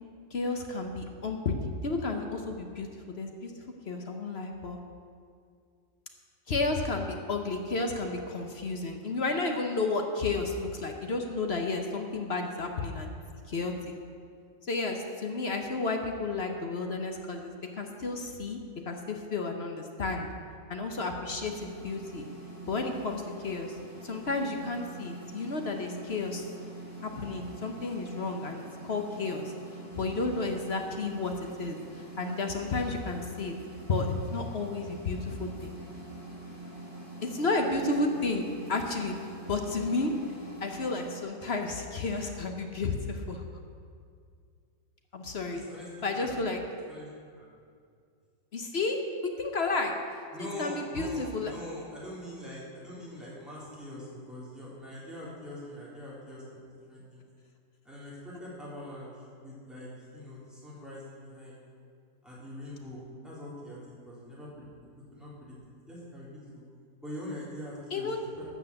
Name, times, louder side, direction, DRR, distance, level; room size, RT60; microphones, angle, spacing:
voice 1, 0.3-3.5 3.9-4.8 6.5-13.2 13.5-13.9 14.6-18.6 18.9-20.3 20.7-22.3 22.7-23.8 24.0-26.5 27.0-29.5 29.9-31.3 31.6-33.6 33.9-35.7 37.2-39.1 39.5-40.1 40.6-43.4 45.1-45.6 46.0-46.6 48.5-49.9 50.4-51.5 67.9-68.2, left 3 dB, 45° left, 4 dB, 1.0 m, -32 dB
sound 1, 21.3-41.2, right 2 dB, 80° left, 4.6 m, -45 dB
voice 2, 45.5-46.3 46.9-47.1 47.3-47.5 50.3-57.3 57.8-61.6 62.2-63.8 64.0-65.6 65.9-66.6 67.0-68.4, left 1 dB, ahead, -8 dB, 3.5 m, -43 dB
12.5 x 6.2 x 8.2 m, 2.2 s
omnidirectional pair, 1.9 m